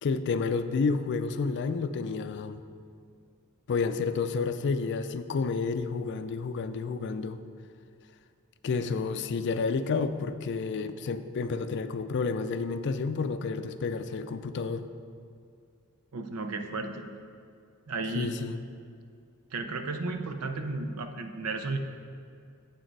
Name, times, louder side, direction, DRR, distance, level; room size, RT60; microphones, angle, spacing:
voice 1, 0.0-2.6 3.7-7.4 8.6-14.9 18.1-18.6, left 4 dB, 50° left, 11 dB, 0.4 m, -30 dB
voice 2, 16.1-17.1 17.9-18.3 19.5-21.8, right 3 dB, 80° right, 7 dB, 0.6 m, -33 dB
8.0 x 6.4 x 4.6 m, 2.3 s
head